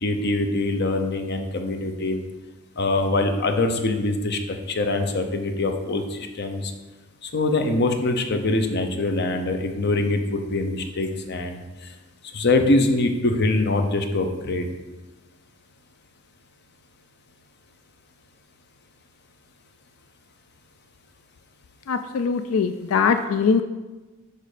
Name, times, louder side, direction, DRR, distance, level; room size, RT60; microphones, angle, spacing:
voice 1, 0.0-2.2 2.8-6.7 7.2-11.6 12.3-14.7, left 2 dB, 55° left, 6 dB, 0.7 m, -23 dB
voice 2, 21.9-23.6, left 5 dB, 85° left, 9 dB, 0.4 m, -22 dB
6.6 x 5.1 x 5.0 m, 1.2 s
head